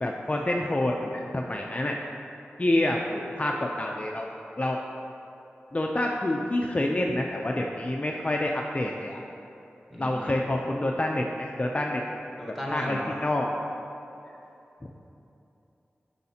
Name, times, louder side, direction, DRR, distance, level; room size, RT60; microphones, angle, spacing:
voice 1, 0.0-2.0 2.6-4.3 4.6-4.8 5.7-9.2 10.0-12.0 12.7-13.5 14.8-14.9, left 1 dB, 30° left, 0 dB, 0.4 m, -27 dB
voice 2, 9.9-10.4 12.4-13.1, equal, 5° right, -4 dB, 1.3 m, -35 dB
8.2 x 5.6 x 2.8 m, 2.8 s
cardioid pair, 50°, 4 cm